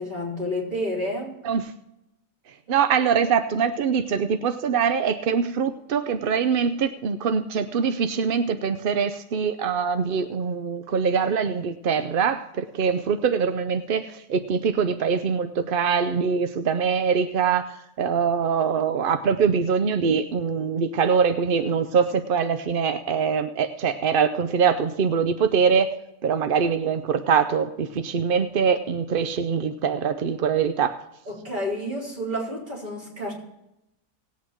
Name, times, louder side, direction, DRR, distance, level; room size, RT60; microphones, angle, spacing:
voice 1, 0.0-1.4 31.3-33.3, equal, 30° right, -4 dB, 4.5 m, -30 dB
voice 2, 2.7-25.9 26.2-31.0, right 6 dB, 55° right, 9 dB, 0.6 m, -23 dB
18.5 x 8.5 x 4.5 m, 0.87 s
omnidirectional pair, 1.6 m